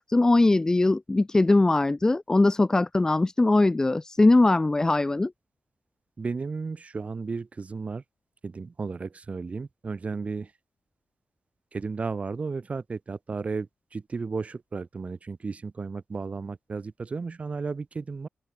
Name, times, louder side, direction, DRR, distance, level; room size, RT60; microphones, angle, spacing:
voice 1, 0.0-5.3, left 2 dB, 15° left, 0.3 m, -21 dB
voice 2, 6.2-8.0 8.4-10.5 11.7-18.3, right 4 dB, 35° right, 0.9 m, -34 dB
open air
wide cardioid pair, 110°, 4 cm